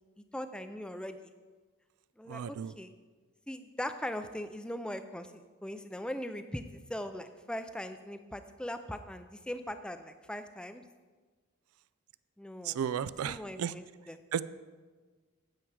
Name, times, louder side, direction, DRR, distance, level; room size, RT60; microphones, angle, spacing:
voice 1, 0.3-1.2 2.2-2.9 3.5-10.8 12.4-12.8 13.2-14.2, left 1 dB, 5° left, 9 dB, 0.4 m, -40 dB
voice 2, 2.3-2.7 12.6-13.7 14.3-14.4, right 8 dB, 80° right, 17 dB, 0.3 m, -34 dB
9.2 x 7.7 x 4.7 m, 1.4 s
head